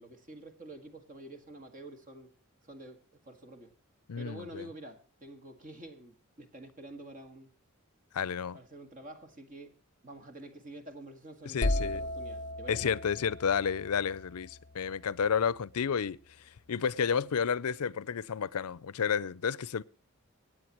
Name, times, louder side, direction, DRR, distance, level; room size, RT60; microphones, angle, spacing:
voice 1, 0.0-2.3 2.6-3.7 4.2-7.5 8.5-9.8 10.0-12.9, right 1 dB, 35° right, 1.8 m, -48 dB
voice 2, 4.1-4.7 8.1-8.6 11.4-12.0 12.7-16.2 16.7-19.8, left 7 dB, 85° left, 0.5 m, -31 dB
sound 1, 11.6-15.4, left 1 dB, 35° left, 0.5 m, -36 dB
25.0 x 9.1 x 3.0 m
head